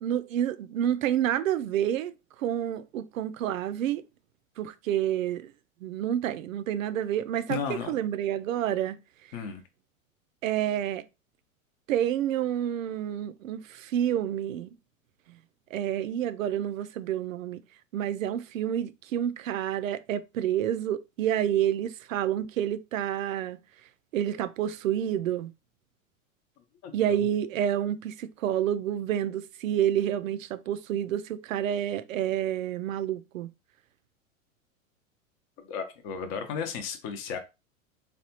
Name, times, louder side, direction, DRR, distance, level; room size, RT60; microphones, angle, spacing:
voice 1, 0.0-2.1 2.4-4.0 4.6-5.5 5.8-7.6 7.9-9.0 10.4-11.0 11.9-14.7 15.7-17.6 17.9-23.6 24.1-25.5 26.9-33.5, right 10 dB, 75° right, 0.5 m, -29 dB
voice 2, 7.5-8.0 9.3-9.6 26.8-27.3 35.7-37.4, left 6 dB, 40° left, 0.8 m, -34 dB
3.3 x 2.3 x 2.8 m
hypercardioid pair, 100°, 41 cm